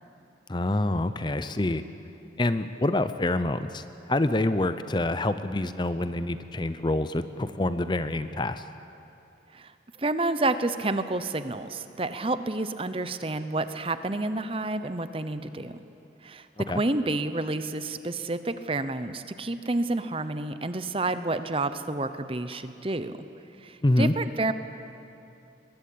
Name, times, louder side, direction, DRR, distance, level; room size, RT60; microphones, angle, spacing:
voice 1, 0.5-1.8 2.4-8.6 16.7-16.8 23.8-24.1, left 1 dB, 25° left, 12 dB, 0.6 m, -26 dB
voice 2, 10.0-15.8 16.2-23.1 23.6-24.5, right 2 dB, 30° right, 11 dB, 0.9 m, -29 dB
22.5 x 21.0 x 8.7 m, 2.8 s
head